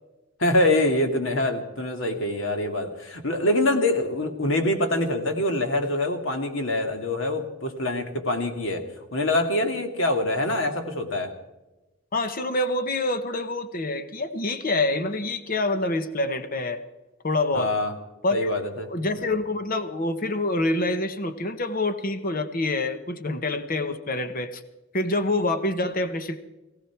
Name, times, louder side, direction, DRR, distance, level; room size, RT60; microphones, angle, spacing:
voice 1, 0.4-8.8 9.1-11.3 17.5-17.9 18.3-18.9, left 1 dB, 65° left, 6 dB, 2.2 m, -25 dB
voice 2, 12.1-16.8 17.2-17.7 18.2-18.5 18.9-24.6 24.9-26.4, left 2 dB, 45° left, 10 dB, 1.1 m, -26 dB
19.0 x 16.5 x 4.6 m, 1.0 s
head